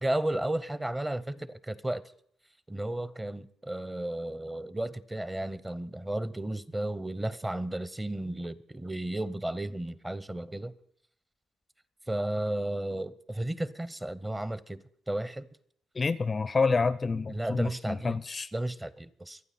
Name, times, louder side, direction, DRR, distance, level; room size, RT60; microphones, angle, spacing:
voice 1, 0.0-2.1 2.7-10.7 12.1-15.5 17.3-18.2 18.5-19.4, right 1 dB, 15° right, 0.7 m, -33 dB
voice 2, 16.0-18.5, left 4 dB, 30° left, 0.4 m, -28 dB
25.0 x 9.0 x 4.2 m
cardioid pair, 90°, 0 cm